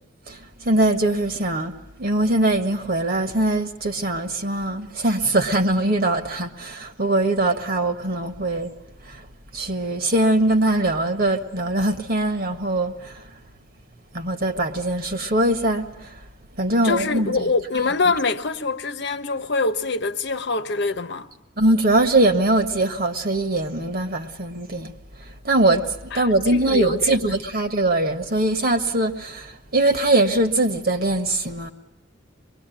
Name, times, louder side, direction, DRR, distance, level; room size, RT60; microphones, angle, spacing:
voice 1, 0.3-8.7 9.0-9.2 9.5-13.3 14.1-16.2 16.6-17.3 21.6-24.9 25.4-31.7, right 2 dB, 50° right, 1.7 m, -22 dB
voice 2, 16.8-21.3 26.1-26.2 26.5-27.2, left 3 dB, 65° left, 1.1 m, -24 dB
25.5 x 21.5 x 9.3 m
head